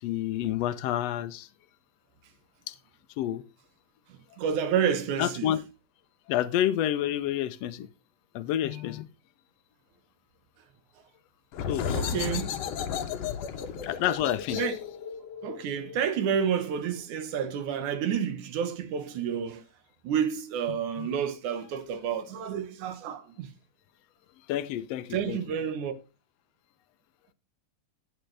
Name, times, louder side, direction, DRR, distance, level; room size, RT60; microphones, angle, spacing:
voice 1, 0.0-1.5 2.7-2.8 3.2-3.4 5.2-5.6 6.3-7.9 8.3-9.1 11.7-11.9 13.7-14.6 21.0-21.1 24.5-25.4, left 12 dB, 80° left, 1.4 m, -29 dB
voice 2, 4.1-5.5 11.9-12.5 13.5-13.6 14.5-14.8 15.4-19.6 20.0-23.5 25.1-25.9, right 8 dB, 70° right, 2.6 m, -30 dB
sound 1, 11.5-16.9, left 7 dB, 65° left, 1.9 m, -34 dB
15.5 x 9.2 x 3.3 m
omnidirectional pair, 3.7 m